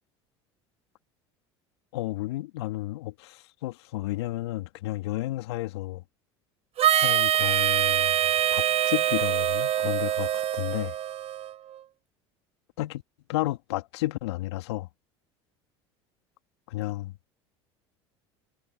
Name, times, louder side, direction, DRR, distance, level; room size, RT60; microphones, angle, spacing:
voice 1, 1.9-6.0 6.9-8.2 8.5-10.9 12.8-13.0 13.3-14.9 16.7-17.1, left 17 dB, 75° left, 2.5 m, -32 dB
Harmonica, 6.8-11.5, right 11 dB, 50° right, 6.9 m, -24 dB
hypercardioid pair, 80°, 14 cm